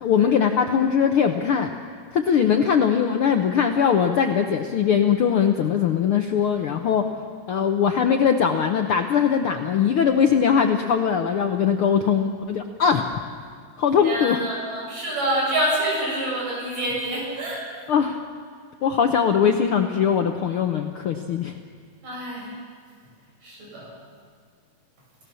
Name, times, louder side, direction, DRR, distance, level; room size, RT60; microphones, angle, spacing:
voice 1, 0.0-1.7 2.1-7.0 7.5-13.1 13.8-14.4 17.9-18.2 18.8-21.6, left 7 dB, 75° left, 5 dB, 1.2 m, -21 dB
voice 2, 14.0-17.6 22.0-22.5 23.4-23.9, right 1 dB, 80° right, -3 dB, 8.4 m, -27 dB
28.5 x 17.0 x 7.0 m, 2.1 s
omnidirectional pair, 3.7 m